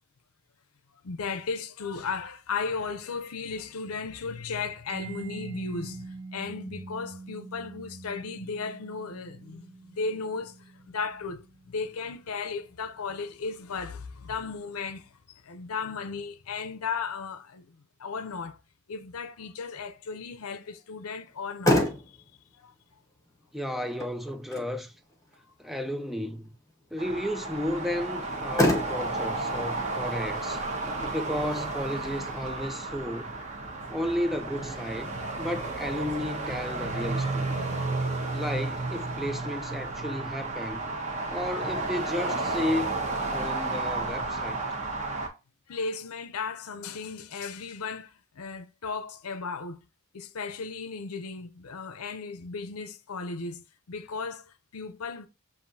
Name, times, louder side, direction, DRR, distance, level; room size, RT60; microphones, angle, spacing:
voice 1, 1.0-18.6 18.9-22.2 22.5-22.7 45.7-49.9 50.1-55.3, left 4 dB, 80° left, 0.6 m, -35 dB
Mallet percussion, 4.9-12.4, right 3 dB, 60° right, 0.7 m, -44 dB
Motor vehicle (road), 21.3-34.2, left 1 dB, 15° left, 0.8 m, -33 dB
voice 2, 23.5-24.9 25.6-26.5 26.9-30.7 31.1-33.3 33.9-37.6 38.3-40.9 41.3-43.0 43.2-44.6, left 1 dB, ahead, 0.3 m, -33 dB
sound 1, 27.0-45.3, right 3 dB, 30° right, 1.0 m, -32 dB
7.0 x 2.7 x 2.7 m
head